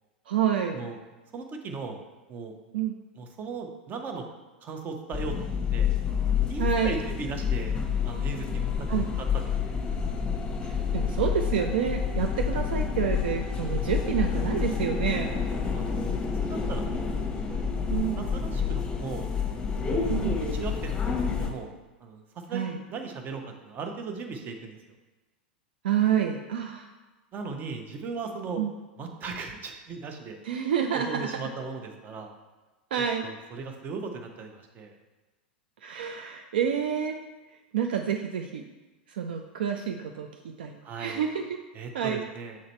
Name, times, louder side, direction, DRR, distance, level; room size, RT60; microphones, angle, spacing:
voice 1, 0.3-0.8 2.7-3.0 6.6-7.0 8.9-9.1 10.6-15.4 17.9-18.3 20.1-20.4 22.5-22.8 25.8-26.9 28.6-28.7 30.4-31.3 32.9-33.3 35.8-37.2 37.7-38.6 39.1-40.3 40.6-41.6 41.9-42.2, right 8 dB, 65° right, 5 dB, 0.5 m, -28 dB
voice 2, 1.3-2.0 2.3-2.5 3.2-4.3 4.6-5.9 6.5-7.7 8.0-8.7 9.2-9.8 15.7-17.1 17.5-17.6 17.8-19.3 19.8-20.3 20.5-21.7 22.0-22.2 22.5-24.8 27.3-28.6 29.0-30.4 30.9-32.3 33.2-34.9 40.8-41.2 41.7-42.6, right 4 dB, 30° right, 4 dB, 0.9 m, -37 dB
sound 1, 5.1-21.5, left 6 dB, 20° left, 1.0 m, -28 dB
7.4 x 3.9 x 4.4 m, 1.2 s
figure-of-eight pair, 90°, 6 cm